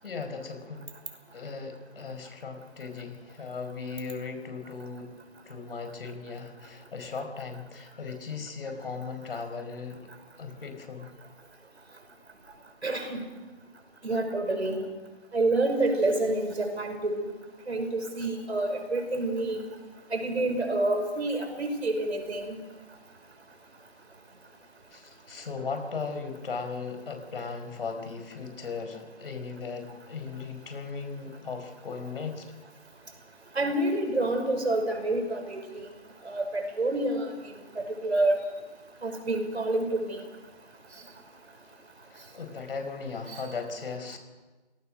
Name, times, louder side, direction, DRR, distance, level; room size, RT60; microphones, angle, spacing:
voice 1, 0.0-0.9 1.3-5.1 5.4-10.1 10.4-11.1 24.9-32.5 42.1-44.2, left 4 dB, 60° left, 7 dB, 5.2 m, -37 dB
voice 2, 12.8-13.2 14.0-14.9 15.3-17.3 17.7-19.6 20.1-22.6 33.6-35.6 36.2-37.3 38.0-38.4 39.0-40.2, right 2 dB, 80° right, 6 dB, 5.8 m, -28 dB
27.0 x 18.5 x 6.4 m, 1.2 s
figure-of-eight pair, 155°, 32 cm